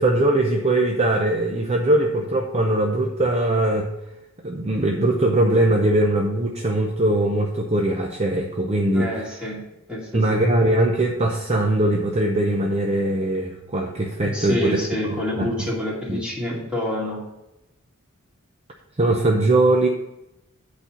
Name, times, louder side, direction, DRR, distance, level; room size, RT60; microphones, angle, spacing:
voice 1, 0.0-3.9 4.4-9.3 10.1-14.8 15.1-15.7 16.1-16.2 19.0-19.9, right 1 dB, 30° right, 1 dB, 0.6 m, -21 dB
voice 2, 8.9-9.6 9.9-10.0 10.3-10.4 14.2-17.2, left 1 dB, 5° right, -5 dB, 2.3 m, -27 dB
8.7 x 4.2 x 5.8 m, 0.91 s
head